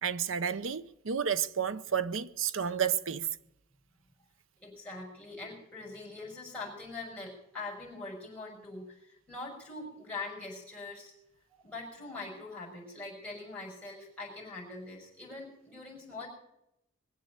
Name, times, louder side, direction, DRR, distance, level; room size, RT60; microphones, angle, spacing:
voice 1, 0.0-3.3, right 7 dB, 65° right, 0.7 m, -31 dB
voice 2, 4.6-11.1 11.5-16.3, left 3 dB, 5° left, 5.9 m, -43 dB
21.5 x 7.6 x 8.2 m
head